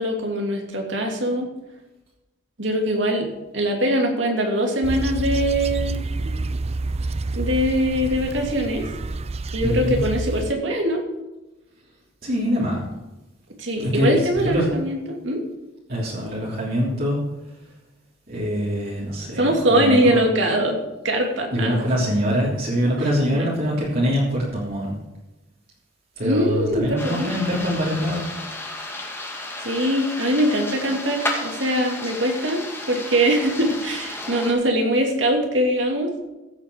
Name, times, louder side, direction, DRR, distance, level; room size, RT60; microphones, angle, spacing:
voice 1, 0.0-1.5 2.6-3.3 3.5-6.0 7.3-8.8 9.5-11.0 13.6-15.4 19.3-20.8 21.0-21.8 23.3-23.5 26.2-27.3 29.6-32.6 32.9-36.1, equal, 70° right, 2 dB, 2.7 m, -22 dB
sound 1, 4.8-10.5, right 2 dB, 35° right, 0.5 m, -28 dB
voice 2, 9.6-10.0 12.2-12.9 13.8-14.2 14.4-14.7 15.9-17.2 18.3-20.2 21.5-25.0 26.2-28.3, equal, 50° right, -6 dB, 3.3 m, -24 dB
sound 2, 27.0-34.5, left 2 dB, 15° left, 2.1 m, -33 dB
15.5 x 8.4 x 4.7 m, 1.0 s
head